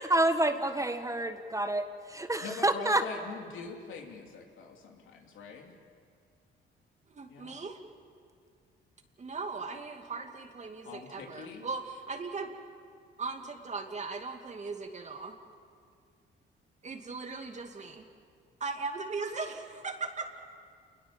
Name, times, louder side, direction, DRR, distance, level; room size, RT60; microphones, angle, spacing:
voice 1, 0.0-3.0, right 1 dB, 15° right, 8 dB, 1.4 m, -28 dB
voice 2, 2.4-5.8 7.3-7.6 10.8-11.6, left 4 dB, 80° left, 2 dB, 3.1 m, -43 dB
voice 3, 7.1-7.8 9.2-12.5 13.2-15.3 16.8-18.1 18.6-20.4, right 4 dB, 35° right, 4 dB, 2.5 m, -38 dB
28.0 x 21.0 x 7.3 m, 2.2 s
cardioid pair, 90°, 20 cm